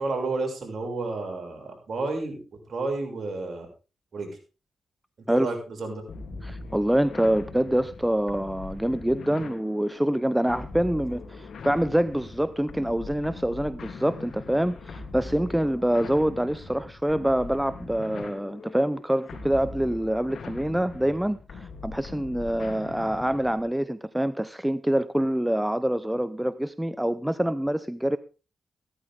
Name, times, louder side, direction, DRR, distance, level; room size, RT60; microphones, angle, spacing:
voice 1, 0.0-2.4 2.7-3.7 4.1-4.3 5.2-6.0, right 3 dB, 60° right, 2 dB, 6.8 m, -31 dB
sound 1, 6.1-23.7, left 4 dB, 70° left, 3.2 m, -41 dB
voice 2, 6.4-28.2, right 1 dB, 5° right, 14 dB, 0.8 m, -26 dB
15.5 x 13.0 x 3.7 m, 0.33 s
cardioid pair, 65°, 0 cm